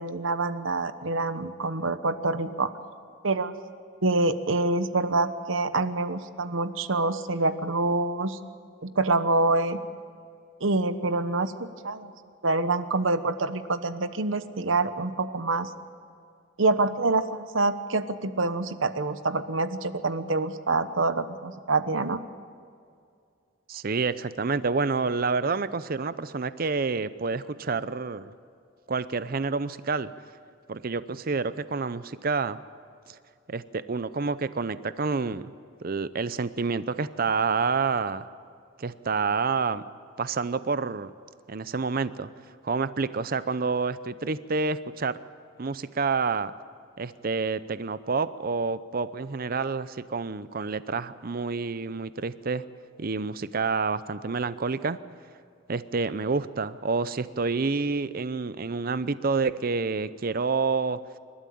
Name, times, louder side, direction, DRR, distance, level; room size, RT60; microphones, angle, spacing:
voice 1, 0.0-2.7 3.2-3.5 4.0-8.4 8.8-9.8 10.6-12.1 12.4-15.7 16.6-22.2, right 3 dB, 75° right, 12 dB, 1.0 m, -26 dB
voice 2, 23.7-28.3 28.9-30.1 30.7-32.6 33.5-35.5 35.8-38.3 38.8-39.8 40.2-41.1 41.5-42.3 42.6-45.1 45.6-46.5 47.0-52.6 53.0-55.0 55.7-61.0, right 4 dB, 45° right, 15 dB, 0.6 m, -28 dB
28.0 x 13.0 x 8.7 m, 2.3 s
head